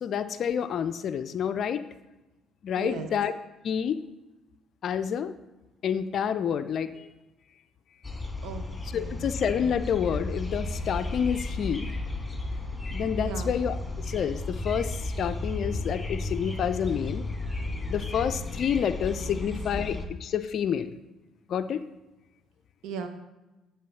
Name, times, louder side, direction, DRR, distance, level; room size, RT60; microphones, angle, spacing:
voice 1, 0.0-1.8 2.6-3.3 3.6-4.0 4.8-5.3 5.8-7.1 8.9-11.9 12.9-13.8 14.0-17.2 17.9-20.9 21.5-21.9, left 8 dB, 55° left, 11 dB, 0.4 m, -28 dB
voice 2, 2.8-3.1 8.4-9.3 13.2-13.5 19.2-19.4 22.8-23.1, right 6 dB, 65° right, 8 dB, 0.7 m, -37 dB
sound 1, 8.0-20.1, left 2 dB, 15° left, 1.8 m, -33 dB
10.5 x 3.5 x 5.7 m, 1.1 s
hypercardioid pair, 50°, 0 cm